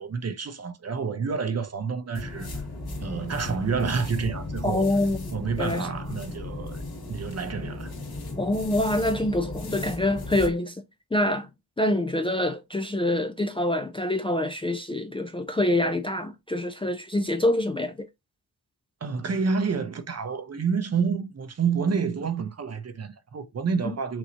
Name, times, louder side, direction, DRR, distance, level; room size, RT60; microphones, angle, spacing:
voice 1, 0.0-2.5 3.0-4.9 5.3-6.8 7.1-7.9 19.0-24.2, right 5 dB, 40° right, 0.7 m, -29 dB
sound 1, 2.1-10.5, left 2 dB, 70° left, 2.1 m, -36 dB
voice 2, 4.6-5.9 8.4-10.8 11.1-11.5 11.8-17.9 23.8-23.9, left 1 dB, 15° left, 0.4 m, -26 dB
6.0 x 2.7 x 2.9 m
wide cardioid pair, 160°, 38 cm